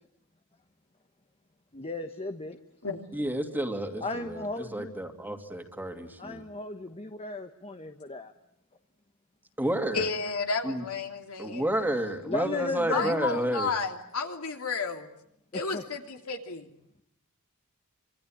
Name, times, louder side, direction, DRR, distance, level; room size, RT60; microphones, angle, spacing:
voice 1, 1.7-2.6 4.0-4.9 6.2-8.3 12.2-13.4 15.5-15.8, left 2 dB, 25° left, 6 dB, 1.2 m, -35 dB
voice 2, 3.1-6.4 9.6-10.0 10.6-10.8 11.4-13.7, right 1 dB, 10° right, 5 dB, 2.5 m, -30 dB
voice 3, 9.9-11.6 12.9-15.1 15.5-16.7, left 4 dB, 70° left, 4 dB, 3.0 m, -32 dB
26.0 x 24.5 x 8.8 m, 0.73 s
head